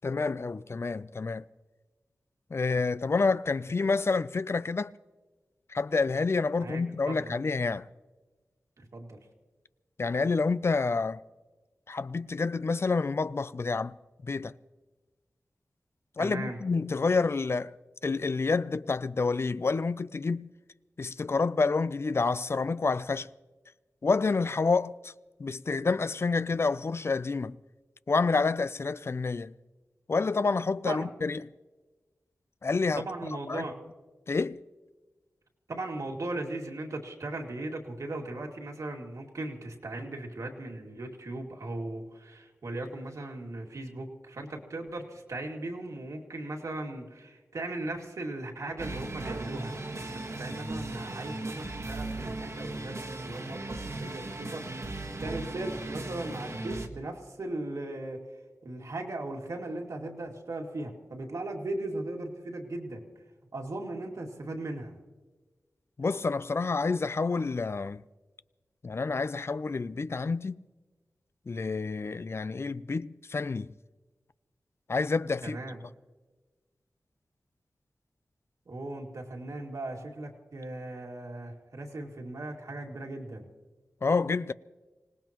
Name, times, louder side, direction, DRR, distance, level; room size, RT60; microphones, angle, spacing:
voice 1, 0.0-1.4 2.5-4.9 5.7-7.9 10.0-11.2 11.9-13.9 14.2-14.5 16.2-17.7 18.0-20.5 21.0-23.3 24.0-25.1 25.4-27.6 28.1-29.5 30.1-31.4 32.6-33.0 33.5-33.7 34.3-34.6 66.0-68.0 68.8-70.6 71.5-73.7 74.9-75.6 84.0-84.5, left 4 dB, 50° left, 0.4 m, -28 dB
voice 2, 6.6-7.3 8.8-9.2 16.2-16.6 30.9-31.1 32.9-33.7 35.7-49.9 50.4-54.7 55.2-58.2 58.6-63.1 63.5-64.9 75.4-75.8 78.7-83.5, right 2 dB, 75° right, 2.3 m, -38 dB
sound 1, 48.8-56.9, right 2 dB, 60° right, 1.5 m, -37 dB
25.5 x 18.0 x 3.0 m
wide cardioid pair, 60°, 6 cm